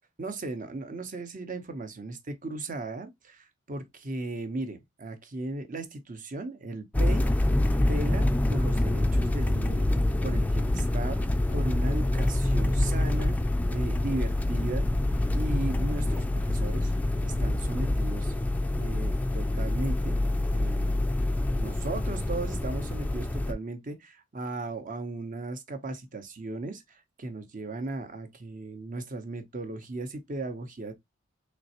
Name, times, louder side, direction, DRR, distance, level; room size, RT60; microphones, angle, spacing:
voice 1, 0.2-7.5 7.8-9.9 10.2-13.4 13.7-14.9 15.3-16.9 17.2-18.3 18.7-20.2 20.5-21.1 21.5-30.9, right 2 dB, 45° right, 0.8 m, -36 dB
sound 1, 6.9-23.5, left 1 dB, 10° left, 0.3 m, -26 dB
3.8 x 3.1 x 2.8 m
head